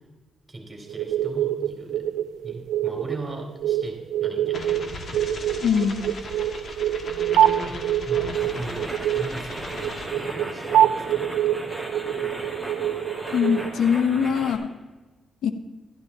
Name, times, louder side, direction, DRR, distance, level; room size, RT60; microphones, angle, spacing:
voice 1, 0.5-2.0 2.4-5.0 7.6-7.8 8.0-11.3, right 2 dB, 20° right, 2 dB, 2.9 m, -39 dB
sound 1, 0.9-13.7, right 11 dB, 90° right, 0.3 m, -25 dB
sound 2, 4.5-10.1, left 2 dB, 50° left, 1.4 m, -37 dB
voice 2, 5.6-6.1 13.3-14.7 15.4-15.5, left 7 dB, 90° left, 10 dB, 0.8 m, -22 dB
sound 3, 8.3-14.6, equal, 10° left, 2.0 m, -36 dB
12.0 x 11.5 x 4.1 m, 1.2 s
cardioid pair, 115°, 0 cm